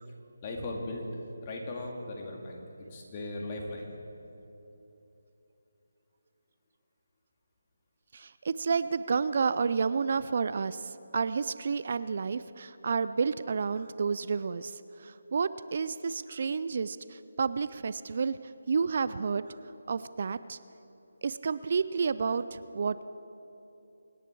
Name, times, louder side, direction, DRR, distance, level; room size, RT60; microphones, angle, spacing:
voice 1, 0.4-1.0 1.4-2.6 2.9-3.9, left 2 dB, 30° left, 0 dB, 2.2 m, -37 dB
voice 2, 8.1-18.4 18.7-19.5 19.9-20.6 21.2-23.0, right 5 dB, 50° right, 14 dB, 0.4 m, -30 dB
25.5 x 10.0 x 4.7 m, 3.0 s
figure-of-eight pair, 155°, 0 cm